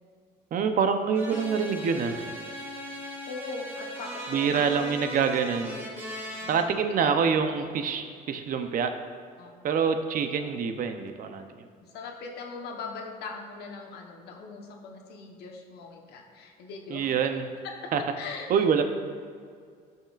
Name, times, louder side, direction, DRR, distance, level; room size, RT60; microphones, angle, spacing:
voice 1, 0.5-2.3 4.3-5.7 6.5-9.0 9.6-11.5 16.9-17.4 17.9-18.0 18.5-18.8, right 6 dB, 55° right, 7 dB, 0.7 m, -26 dB
sound 1, 1.1-6.6, equal, 15° right, 1.9 m, -38 dB
voice 2, 3.2-4.8 6.4-6.5 6.9-7.1 9.4-9.7 11.8-17.3 17.6-18.6, left 4 dB, 75° left, 2 dB, 1.1 m, -40 dB
12.0 x 5.8 x 2.5 m, 2.1 s
cardioid pair, 110°, 17 cm